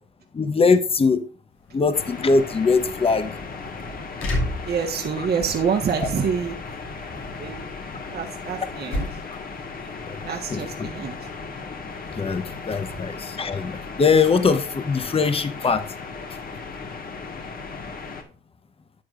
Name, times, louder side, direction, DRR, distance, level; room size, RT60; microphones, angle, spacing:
voice 1, 0.3-1.2 1.7-3.3 5.2-5.3 6.0-6.1 10.5-10.9 12.2-13.1 13.4-15.8, left 4 dB, 30° left, 10 dB, 1.0 m, -21 dB
slicing door, 1.5-16.9, left 1 dB, 90° left, 2.5 m, -37 dB
sound 1, 1.9-18.2, left 4 dB, 45° left, 1.7 m, -36 dB
voice 2, 4.6-6.5 7.4-7.7 8.1-9.0 10.2-11.1, right 6 dB, 55° right, 2 dB, 1.4 m, -26 dB
11.5 x 7.8 x 2.5 m, 0.37 s
cardioid pair, 90°, 20 cm